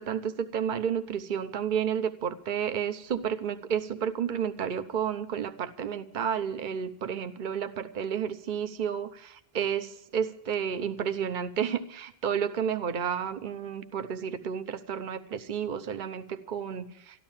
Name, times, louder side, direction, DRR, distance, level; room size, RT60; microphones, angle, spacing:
voice 1, 0.0-17.2, right 8 dB, 50° right, 9 dB, 1.0 m, -31 dB
13.5 x 12.0 x 7.3 m, 0.76 s
omnidirectional pair, 1.1 m